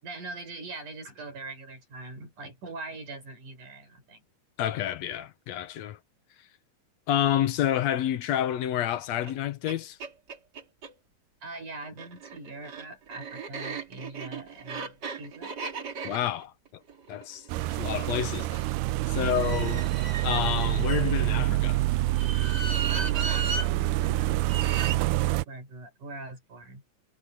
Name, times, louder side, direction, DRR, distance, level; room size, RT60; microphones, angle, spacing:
voice 1, 0.0-4.2 11.4-15.5 19.1-19.4 22.9-26.8, right 2 dB, 60° right, 7.1 m, -42 dB
voice 2, 4.6-6.0 7.1-10.0 16.0-16.5 17.1-18.7 19.1-19.9 20.2-21.8, left 11 dB, 65° left, 1.9 m, -29 dB
sound 1, 9.2-9.3 9.7-9.8 10.0-10.9 11.8-18.0 19.2-21.4 22.1-23.7 24.4-25.0, right 4 dB, 35° right, 2.3 m, -36 dB
sound 2, 17.5-25.5, right 18 dB, 80° right, 2.0 m, -27 dB
omnidirectional pair, 3.9 m